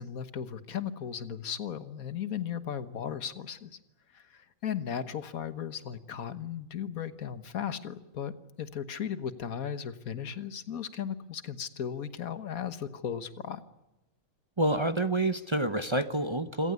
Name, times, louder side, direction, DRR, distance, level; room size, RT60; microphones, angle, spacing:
voice 1, 0.0-3.7 4.1-8.3 8.6-13.6, left 8 dB, 85° left, 12 dB, 1.7 m, -36 dB
voice 2, 14.6-16.7, right 1 dB, 25° right, 10 dB, 0.8 m, -28 dB
27.5 x 17.5 x 9.6 m, 1.0 s
omnidirectional pair, 1.5 m